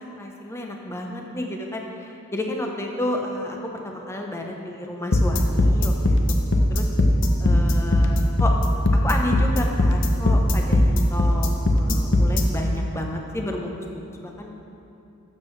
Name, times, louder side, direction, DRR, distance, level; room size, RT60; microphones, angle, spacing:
voice 1, 0.0-3.6 3.8-6.2 6.7-6.9 7.4-8.5 9.0-14.5, left 1 dB, 15° left, 1 dB, 0.8 m, -31 dB
sound 1, 5.1-12.4, left 1 dB, 60° left, 0.7 m, -18 dB
12.5 x 7.5 x 3.3 m, 2.8 s
head